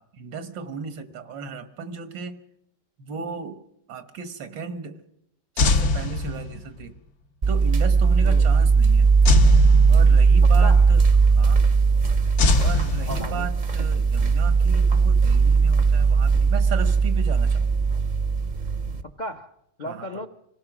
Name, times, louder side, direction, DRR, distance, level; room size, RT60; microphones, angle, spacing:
voice 1, 0.0-2.4 3.0-5.0 5.6-6.9 7.5-9.1 9.9-11.0 11.4-11.7 12.6-17.7 19.8-20.1, right 6 dB, 90° right, 10 dB, 2.0 m, -35 dB
sound 1, 5.6-6.8 9.2-10.5 12.4-13.7, left 3 dB, 60° left, 1.5 m, -23 dB
sound 2, 7.4-19.0, right 5 dB, 40° right, 0.6 m, -18 dB
voice 2, 8.2-8.6 10.4-10.9 12.5-12.7 13.1-13.5 19.0-20.3, left 1 dB, 40° left, 8 dB, 0.6 m, -36 dB
26.0 x 17.5 x 6.0 m, 0.79 s
omnidirectional pair, 1.9 m